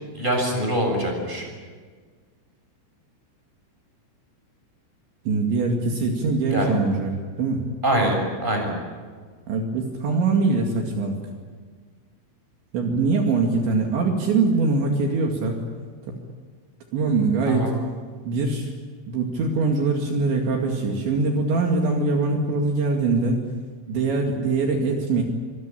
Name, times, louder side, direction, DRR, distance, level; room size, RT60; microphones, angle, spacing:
voice 1, 0.1-1.5 6.5-6.7 7.8-8.7 17.5-17.7, right 1 dB, 10° right, 2 dB, 6.7 m, -24 dB
voice 2, 5.3-7.6 9.5-11.2 12.7-15.6 16.1-16.2 16.9-17.7 18.2-18.7 19.1-23.4 23.9-25.2, right 3 dB, 65° right, 1 dB, 4.4 m, -23 dB
25.5 x 23.5 x 8.7 m, 1.6 s
omnidirectional pair, 5.8 m